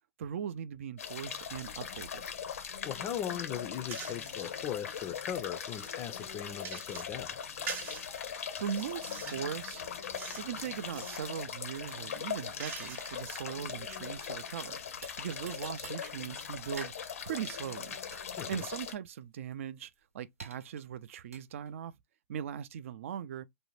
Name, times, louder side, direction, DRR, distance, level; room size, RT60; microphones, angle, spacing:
voice 1, 0.2-2.3 8.6-9.8 10.3-14.8 15.2-16.9 17.3-18.0 18.5-21.9 22.3-23.5, right 9 dB, 65° right, 0.3 m, -39 dB
sound 1, 1.0-18.9, left 7 dB, 80° left, 0.5 m, -40 dB
voice 2, 2.8-7.3 18.4-18.6, left 10 dB, 30° left, 0.3 m, -38 dB
sound 2, 3.9-4.4 4.9-7.2 7.7-8.1 8.6-9.5 10.2-10.5 10.8-11.3 11.8-13.3, right 6 dB, 25° right, 0.6 m, -44 dB
sound 3, 6.8-21.9, right 4 dB, 90° right, 0.8 m, -55 dB
2.6 x 2.1 x 3.0 m
hypercardioid pair, 125°, 8 cm